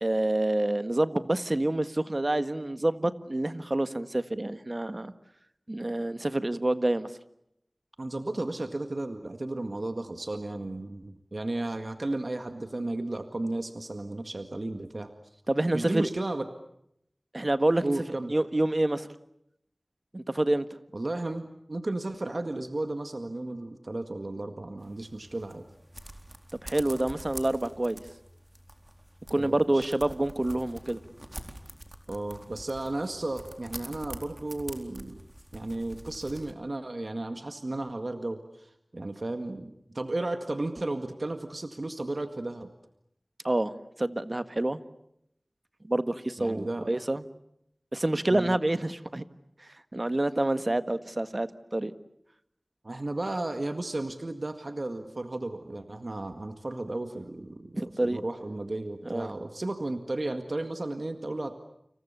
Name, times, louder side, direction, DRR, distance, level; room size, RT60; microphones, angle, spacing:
voice 1, 0.0-5.1 5.7-7.1 15.5-16.1 17.3-17.9 18.3-19.1 20.1-20.6 26.6-28.0 29.3-31.0 43.4-43.7 44.0-44.8 45.9-47.2 47.9-49.2 49.9-51.9 57.7-58.2 59.0-59.3, right 1 dB, 45° right, 11 dB, 1.6 m, -27 dB
voice 2, 8.0-15.1 15.7-16.5 17.8-18.3 20.9-25.7 29.3-29.9 32.1-35.2 35.5-42.7 46.4-46.9 48.3-48.6 52.8-61.5, right 2 dB, 60° right, 7 dB, 1.9 m, -34 dB
sound 1, 24.8-36.5, right 1 dB, 25° right, 4.2 m, -46 dB
30.0 x 27.0 x 7.0 m, 0.76 s
wide cardioid pair, 45°, 0 cm